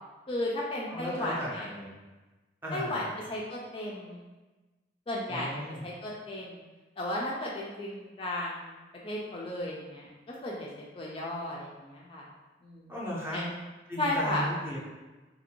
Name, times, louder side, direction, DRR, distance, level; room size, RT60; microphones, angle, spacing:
voice 1, 0.3-1.7 2.7-4.3 5.1-6.6 7.0-10.1 10.4-10.7 11.0-12.2 12.6-12.9 13.3-13.5 14.0-14.5, left 1 dB, 30° left, -4 dB, 0.3 m, -34 dB
voice 2, 0.9-1.9 2.6-3.1 5.3-5.8 12.9-13.4 13.9-14.8, equal, 10° right, -5 dB, 0.6 m, -36 dB
2.8 x 2.5 x 2.9 m, 1.2 s
head